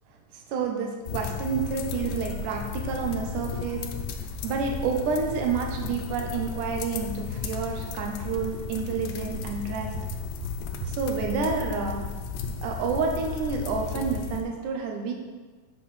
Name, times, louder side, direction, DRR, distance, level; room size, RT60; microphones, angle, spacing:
voice 1, 0.3-10.2 10.8-12.1 12.6-15.1, right 5 dB, 75° right, 2 dB, 2.2 m, -29 dB
sound 1, 1.1-14.4, left 5 dB, 85° left, 1.6 m, -34 dB
7.8 x 4.5 x 5.4 m, 1.3 s
omnidirectional pair, 3.9 m